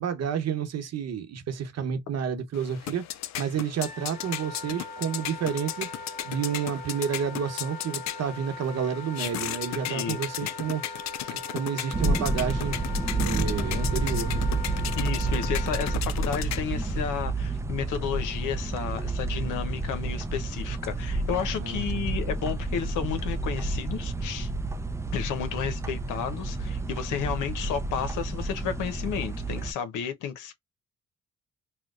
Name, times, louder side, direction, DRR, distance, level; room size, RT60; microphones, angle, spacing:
voice 1, 0.0-3.0 3.4-5.9 6.2-10.8 11.3-12.8 13.2-14.5 21.5-22.1, right 7 dB, 60° right, 1.0 m, -30 dB
sound 1, 2.5-17.0, left 12 dB, 65° left, 0.5 m, -36 dB
Wind instrument woodwind instrument, 3.8-16.0, left 3 dB, 25° left, 1.2 m, -41 dB
voice 2, 9.9-10.5 11.2-11.4 15.0-24.5 25.1-30.5, left 8 dB, 90° left, 0.9 m, -32 dB
sound 2, 11.9-29.7, right 2 dB, 10° right, 0.4 m, -30 dB
4.4 x 2.2 x 2.4 m
cardioid pair, 90°, 30 cm